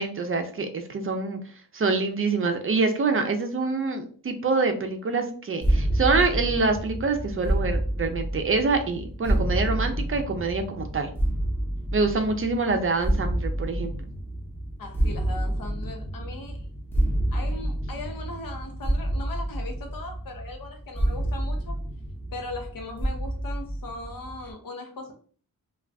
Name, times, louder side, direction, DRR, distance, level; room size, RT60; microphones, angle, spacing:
voice 1, 0.0-1.4 1.7-11.1 11.9-13.9, right 3 dB, 40° right, 6 dB, 0.4 m, -26 dB
sound 1, 5.6-24.5, right 1 dB, 5° left, 0.6 m, -29 dB
voice 2, 14.8-16.7 17.3-21.7 22.3-25.1, left 2 dB, 80° left, 4 dB, 0.8 m, -39 dB
2.5 x 2.3 x 3.3 m, 0.43 s
wide cardioid pair, 135°, 34 cm